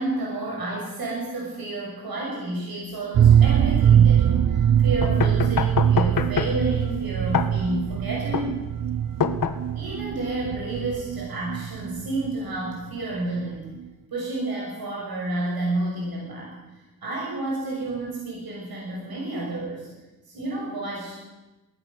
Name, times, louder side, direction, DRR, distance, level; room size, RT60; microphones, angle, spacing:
voice 1, 0.0-8.5 9.7-13.7 14.1-16.5 17.0-19.9 20.3-21.1, right 2 dB, 85° right, -3 dB, 6.8 m, -30 dB
sound 1, 3.1-12.8 13.0-13.1 13.4-13.5, right 9 dB, 60° right, 0.6 m, -22 dB
sound 2, 5.0-10.0, left 6 dB, 65° left, 1.5 m, -27 dB
22.5 x 17.5 x 6.9 m, 1.1 s
wide cardioid pair, 105°, 35 cm